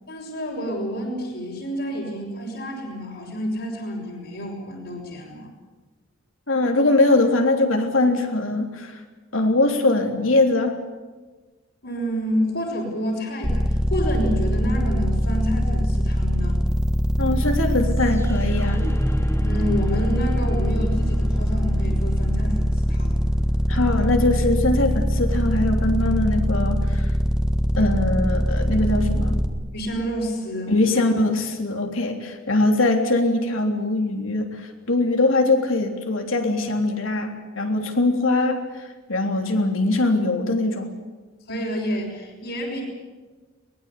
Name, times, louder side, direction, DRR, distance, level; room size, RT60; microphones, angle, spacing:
voice 1, 0.1-5.5 11.8-16.6 19.4-23.2 29.7-30.7 41.5-42.8, equal, 65° left, -5 dB, 5.8 m, -29 dB
voice 2, 6.5-9.0 9.3-10.8 17.2-18.9 23.7-27.1 27.8-29.4 30.7-38.6 39.1-40.9, left 2 dB, 80° left, 3 dB, 3.4 m, -22 dB
sound 1, 13.4-29.5, equal, 5° right, 1.7 m, -22 dB
sound 2, 16.7-26.7, equal, 15° left, 1.8 m, -39 dB
23.0 x 20.5 x 8.5 m, 1.3 s
head